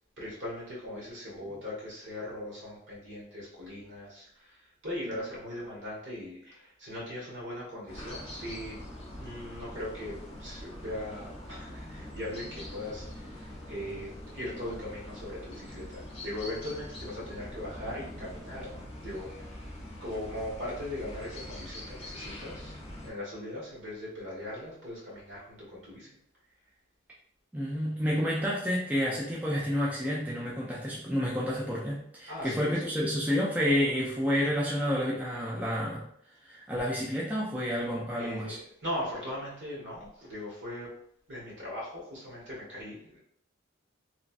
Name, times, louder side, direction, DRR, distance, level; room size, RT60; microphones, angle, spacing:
voice 1, 0.2-19.7 20.0-22.7 23.0-26.1 32.3-33.2 38.1-40.9 41.3-43.2, left 1 dB, 65° right, -5 dB, 1.3 m, -39 dB
sound 1, 7.9-23.1, left 1 dB, 30° left, 0.7 m, -43 dB
voice 2, 27.5-36.0 36.4-38.6, equal, 5° right, -6 dB, 0.4 m, -29 dB
3.0 x 2.3 x 2.5 m, 0.69 s
head